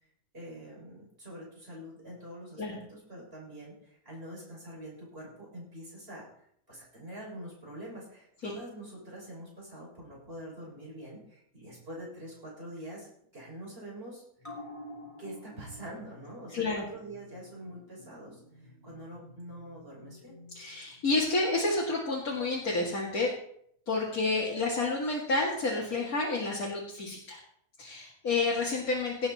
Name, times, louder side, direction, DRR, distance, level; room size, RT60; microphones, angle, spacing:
voice 1, 0.3-6.3 6.7-13.1 13.3-14.2 15.2-20.3, right 1 dB, 40° right, -4 dB, 6.7 m, -45 dB
sound 1, 14.4-21.3 21.7-21.8, left 1 dB, 20° left, 3.4 m, -50 dB
voice 2, 16.5-16.8 20.5-23.3 23.9-27.4 27.8-29.3, left 3 dB, 80° left, -4 dB, 2.8 m, -30 dB
17.5 x 9.7 x 4.3 m, 0.68 s
omnidirectional pair, 1.5 m